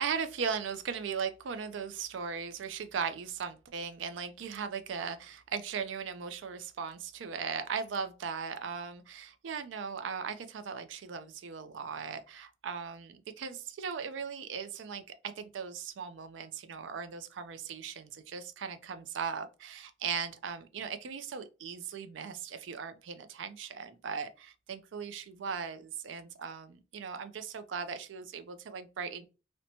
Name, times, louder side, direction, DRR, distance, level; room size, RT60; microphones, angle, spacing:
voice 1, 0.0-29.3, right 6 dB, 85° right, 0.4 m, -38 dB
2.9 x 2.1 x 2.6 m
head